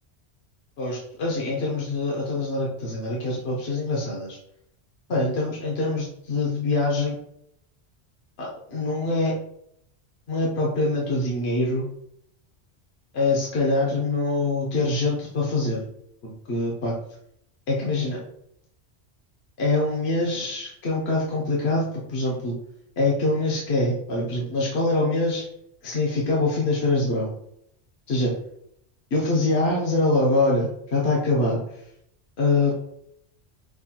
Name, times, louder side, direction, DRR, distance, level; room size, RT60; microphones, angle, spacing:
voice 1, 0.8-4.4 5.1-7.2 8.4-9.3 10.3-11.9 13.1-15.8 16.2-16.9 17.7-18.2 19.6-22.5 23.0-25.5 25.8-27.3 28.1-28.4 29.1-31.8 32.4-32.8, left 2 dB, 65° left, -4 dB, 1.1 m, -24 dB
6.0 x 2.3 x 2.8 m, 0.73 s
omnidirectional pair, 1.2 m